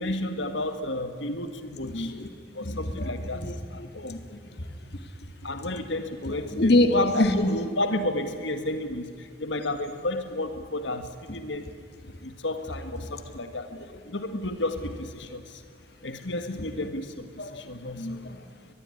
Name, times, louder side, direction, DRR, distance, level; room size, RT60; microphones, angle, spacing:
voice 1, 0.0-2.1 2.6-3.4 3.7-4.2 5.4-9.0 9.4-11.7 12.2-13.7 14.1-15.4 16.0-17.3 17.5-18.1, left 1 dB, 75° left, 9 dB, 1.8 m, -31 dB
voice 2, 1.8-2.3 2.6-5.1 6.3-7.4 12.1-12.2 13.0-13.1 17.4-17.6 17.9-18.5, left 1 dB, 55° left, 8 dB, 1.8 m, -27 dB
23.0 x 21.5 x 9.9 m, 2.2 s
head